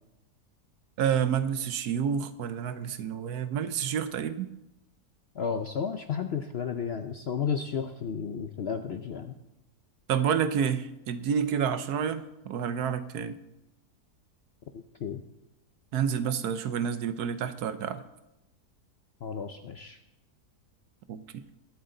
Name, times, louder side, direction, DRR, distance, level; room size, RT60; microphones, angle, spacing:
voice 1, 1.0-4.5 10.1-13.4 15.9-18.0 21.1-21.4, right 8 dB, 75° right, 12 dB, 1.2 m, -29 dB
voice 2, 5.4-9.4 14.7-15.2 19.2-20.0, left 6 dB, 60° left, 7 dB, 0.6 m, -33 dB
21.0 x 8.0 x 3.8 m, 0.91 s
omnidirectional pair, 1.7 m